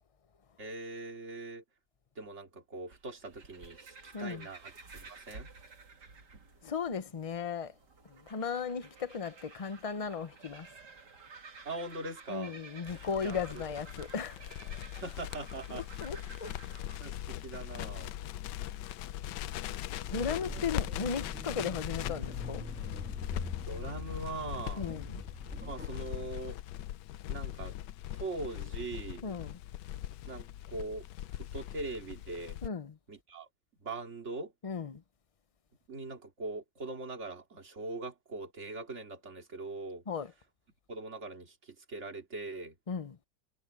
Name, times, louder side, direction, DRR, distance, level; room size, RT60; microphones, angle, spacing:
voice 1, 0.6-1.6 2.2-5.5 11.6-12.5 13.2-13.4 15.0-15.8 17.0-18.1 20.0-20.5 23.6-24.9 25.6-26.6 27.3-27.7 28.1-29.2 30.3-31.0 31.5-32.6 33.1-33.5 33.8-34.5 35.9-40.0 40.9-41.5 41.9-42.7, right 2 dB, 40° right, 3.0 m, -41 dB
sound 1, 2.9-17.0, right 4 dB, 70° right, 3.0 m, -53 dB
voice 2, 4.1-4.5 6.6-7.7 8.1-10.7 12.3-14.4 15.7-16.5 19.7-19.8 20.1-22.7 24.8-25.2 29.2-29.6 32.6-33.0 34.6-35.0 40.1-40.3 42.9-43.2, left 6 dB, 40° left, 0.5 m, -36 dB
Crackle, 12.9-32.7, left 13 dB, 85° left, 1.3 m, -40 dB
sound 2, 20.1-26.3, equal, 5° right, 2.2 m, -44 dB
omnidirectional pair, 1.9 m